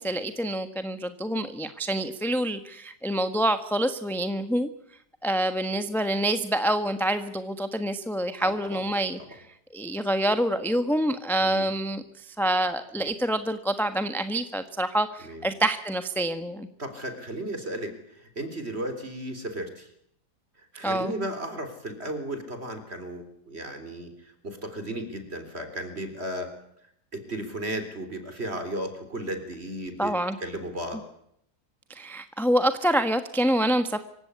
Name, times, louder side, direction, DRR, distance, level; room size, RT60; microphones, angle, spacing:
voice 1, 0.0-4.7 5.2-9.4 9.7-16.7 20.8-21.1 30.0-30.4 31.9-34.0, right 1 dB, ahead, 9 dB, 1.2 m, -26 dB
voice 2, 8.4-8.8 9.2-9.3 11.4-11.7 15.2-15.5 16.8-19.9 20.7-24.1 24.4-26.5 27.1-31.0, right 1 dB, 40° right, 8 dB, 4.0 m, -35 dB
25.5 x 16.5 x 9.8 m, 0.74 s
omnidirectional pair, 1.7 m